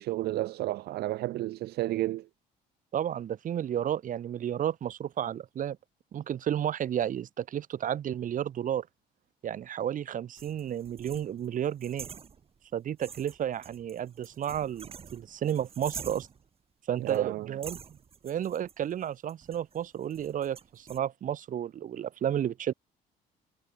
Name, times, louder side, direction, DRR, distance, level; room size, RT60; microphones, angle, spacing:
voice 1, 0.0-2.3 17.0-17.5, right 16 dB, 75° right, 0.9 m, -31 dB
voice 2, 2.9-5.8 6.1-8.9 9.4-12.1 12.7-16.3 16.9-17.8 18.2-22.7, right 10 dB, 50° right, 2.0 m, -32 dB
sound 1, 10.4-12.7 13.0-16.5 17.1-17.2 17.6-21.0, right 6 dB, 35° right, 2.1 m, -47 dB
cardioid pair, 110°, 17 cm